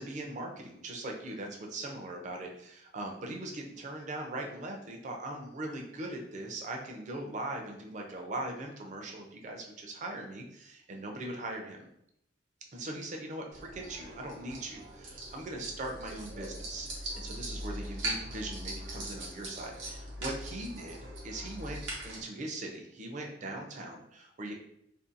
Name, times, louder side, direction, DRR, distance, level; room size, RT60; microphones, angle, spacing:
voice 1, 0.0-11.9 12.7-16.9 17.2-21.0 21.2-24.5, right 2 dB, 40° right, 2 dB, 0.4 m, -40 dB
sound 1, 13.5-22.2, right 1 dB, 80° right, 0.9 m, -41 dB
2.6 x 2.2 x 2.5 m, 0.76 s
head